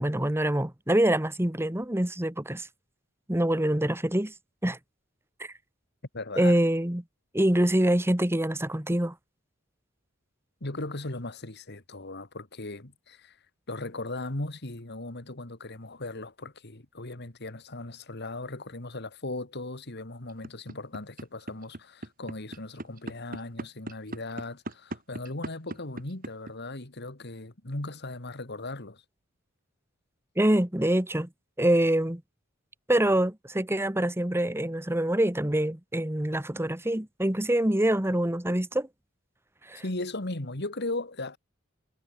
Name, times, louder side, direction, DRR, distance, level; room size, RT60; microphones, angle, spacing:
voice 1, 0.0-2.7 3.3-4.3 4.6-4.8 6.4-7.0 7.3-9.1 30.4-31.3 31.6-32.2 32.9-38.9 39.7-39.8, right 1 dB, 10° right, 1.5 m, -25 dB
voice 2, 6.1-6.6 10.6-13.4 13.7-29.0 39.8-41.4, left 2 dB, 55° left, 2.5 m, -37 dB
sound 1, 20.3-26.5, right 1 dB, 45° right, 5.1 m, -37 dB
head